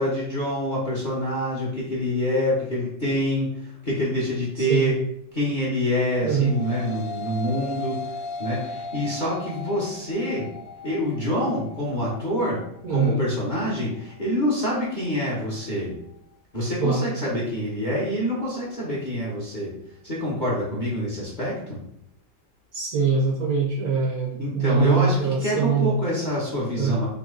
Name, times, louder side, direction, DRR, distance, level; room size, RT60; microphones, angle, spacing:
voice 1, 0.0-5.0 5.3-8.1 8.4-10.5 10.8-12.6 12.9-15.9 16.5-19.7 20.0-21.8 24.3-27.1, equal, 30° left, -6 dB, 1.0 m, -26 dB
voice 2, 4.6-4.9 6.2-6.5 12.8-13.2 16.8-17.1 22.7-25.9 26.7-27.0, right 5 dB, 65° right, -2 dB, 1.0 m, -23 dB
sound 1, 6.1-15.2, left 3 dB, 85° left, 1.4 m, -38 dB
3.8 x 3.0 x 3.7 m, 0.73 s
omnidirectional pair, 2.0 m